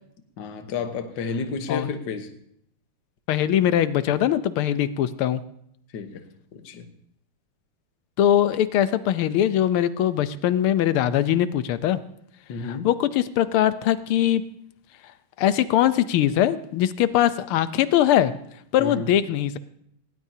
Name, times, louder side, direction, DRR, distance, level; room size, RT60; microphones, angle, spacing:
voice 1, 0.4-2.3 5.9-6.3 6.5-6.9 12.5-12.9 18.8-19.1, left 5 dB, 60° left, 7 dB, 1.8 m, -31 dB
voice 2, 3.3-5.4 8.2-12.0 12.6-14.4 15.4-18.3 18.7-19.5, left 11 dB, 85° left, 14 dB, 1.7 m, -21 dB
19.0 x 18.5 x 2.8 m, 0.72 s
omnidirectional pair, 2.3 m